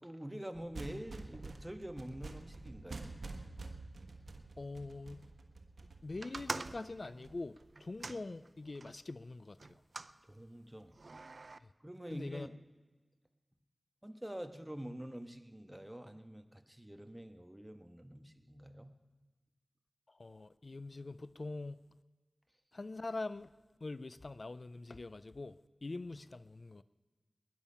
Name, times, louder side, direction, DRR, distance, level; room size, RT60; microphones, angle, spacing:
voice 1, 0.0-3.1 10.3-11.0 11.8-12.5 14.0-18.9, equal, 15° right, 1.3 m, -46 dB
sound 1, 0.5-8.0, right 3 dB, 85° right, 1.3 m, -48 dB
voice 2, 4.6-5.3 6.0-9.8 11.6-11.7 12.1-12.5 20.1-21.8 22.7-23.5 23.8-26.8, left 2 dB, 60° left, 0.4 m, -44 dB
sound 2, 6.2-9.0 9.6-10.2 10.9-11.6, right 3 dB, 65° right, 0.5 m, -45 dB
19.5 x 10.5 x 5.7 m
cardioid pair, 40°, 0 cm